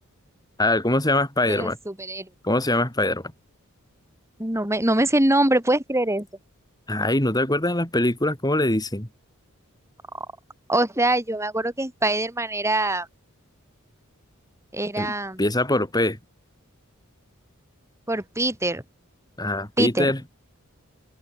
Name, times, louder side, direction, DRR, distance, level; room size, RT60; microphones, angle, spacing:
voice 1, 0.6-1.8 2.4-3.2 6.9-9.1 15.0-15.1 15.4-16.2 19.4-20.2, left 1 dB, 20° left, 5.0 m, -23 dB
voice 2, 1.5-2.3 4.4-6.3 10.1-10.3 10.7-13.1 14.7-15.4 18.1-18.8 19.8-20.1, right 1 dB, 15° right, 5.1 m, -23 dB
open air
head